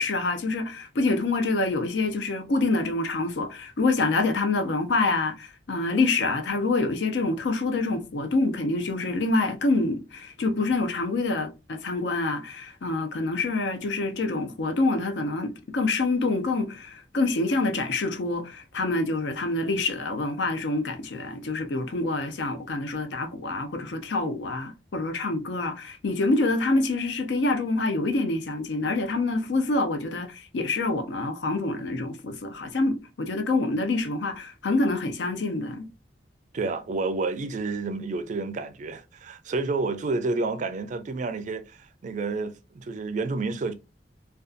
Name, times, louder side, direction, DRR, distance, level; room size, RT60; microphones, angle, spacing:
voice 1, 0.0-35.9, left 3 dB, 75° left, 0.5 m, -26 dB
voice 2, 36.5-43.7, right 3 dB, 45° right, 0.4 m, -30 dB
2.5 x 2.3 x 2.4 m
head